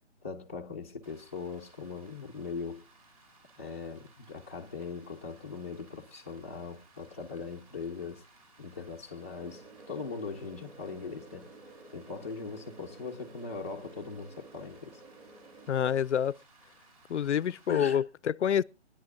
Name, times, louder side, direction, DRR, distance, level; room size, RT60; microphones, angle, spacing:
voice 1, 0.2-2.8 3.6-8.2 8.6-11.5 11.9-15.0 17.7-18.0, left 4 dB, 15° left, 0.6 m, -40 dB
Rain, 1.0-17.7, right 3 dB, 30° right, 3.1 m, -61 dB
sound 1, 9.3-16.0, right 2 dB, 65° right, 5.8 m, -52 dB
voice 2, 15.7-16.4 17.1-18.6, left 9 dB, 80° left, 0.6 m, -27 dB
26.0 x 10.0 x 2.6 m
hypercardioid pair, 170°, 35 cm